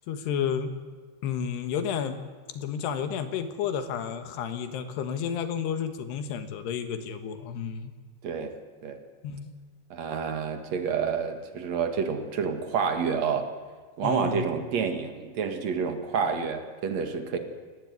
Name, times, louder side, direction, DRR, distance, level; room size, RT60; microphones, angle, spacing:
voice 1, 0.1-0.7 1.2-2.2 2.5-7.9 9.2-9.5 14.0-14.5, left 8 dB, 75° left, 9 dB, 3.6 m, -31 dB
voice 2, 8.2-8.5 8.8-9.0 9.9-13.5 14.0-17.4, right 6 dB, 50° right, 7 dB, 2.6 m, -29 dB
27.5 x 18.0 x 9.6 m, 1.4 s
omnidirectional pair, 5.0 m